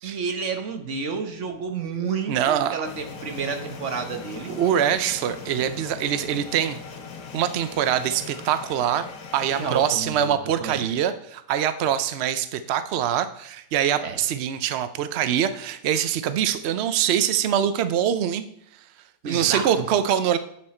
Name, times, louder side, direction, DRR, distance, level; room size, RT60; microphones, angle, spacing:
voice 1, 0.0-4.5 9.5-10.9 14.0-14.2 19.2-19.7, right 5 dB, 50° right, 5 dB, 1.3 m, -30 dB
voice 2, 2.3-2.8 4.5-6.8 7.3-9.0 9.3-18.4 19.2-20.4, right 9 dB, 75° right, 11 dB, 0.6 m, -24 dB
sound 1, 2.8-9.9, left 5 dB, 60° left, 1.5 m, -40 dB
9.7 x 6.2 x 4.3 m, 0.74 s
omnidirectional pair, 1.8 m